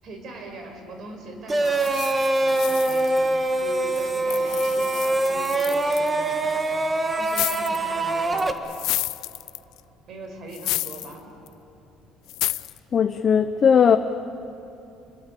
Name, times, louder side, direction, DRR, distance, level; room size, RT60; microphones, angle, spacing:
voice 1, 0.0-2.0 2.4-3.3 3.6-6.5 7.2-8.5 10.0-11.2, right 2 dB, 50° right, 5 dB, 5.1 m, -40 dB
sound 1, 1.5-8.5, right 2 dB, 20° right, 1.6 m, -23 dB
sound 2, 1.6-3.6 3.9-6.1 7.2-7.9 8.4-9.8 10.5-11.1 11.5-11.6 12.3-12.8, left 17 dB, 75° left, 0.5 m, -31 dB
voice 2, 12.9-14.0, left 7 dB, 35° left, 8 dB, 0.8 m, -18 dB
27.5 x 21.5 x 8.4 m, 2.8 s
cardioid pair, 130°, 0 cm